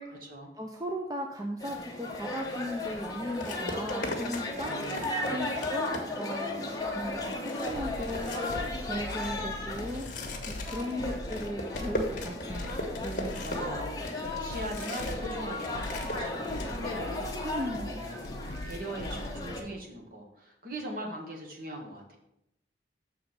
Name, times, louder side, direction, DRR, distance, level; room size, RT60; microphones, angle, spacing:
voice 1, 0.6-4.8 5.3-8.5 8.9-10.1 10.5-12.8 13.0-13.6 17.4-18.0, equal, 20° right, 1 dB, 0.7 m, -37 dB
sound 1, 1.6-19.6, left 2 dB, 20° left, 1.1 m, -36 dB
sound 2, 2.4-2.6 3.4-6.4 6.8-6.9 7.2-15.3 15.6-16.7, left 1 dB, 45° left, 1.3 m, -38 dB
voice 2, 4.6-5.5 10.6-11.1 13.4-17.2 17.7-18.4 18.6-22.2, right 1 dB, 55° right, 0 dB, 1.6 m, -41 dB
sound 3, 7.7-19.7, left 1 dB, 65° left, 0.6 m, -41 dB
6.6 x 4.4 x 6.6 m, 0.80 s
head